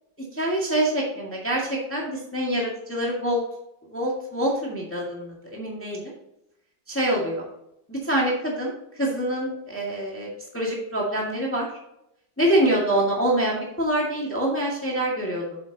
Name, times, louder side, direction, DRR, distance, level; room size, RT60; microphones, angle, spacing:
voice 1, 0.3-3.4 3.9-6.1 6.9-7.4 7.9-8.7 9.0-10.3 10.5-11.7 12.4-15.6, right 1 dB, 5° left, -3 dB, 1.7 m, -25 dB
8.9 x 7.0 x 2.8 m, 0.84 s
omnidirectional pair, 2.0 m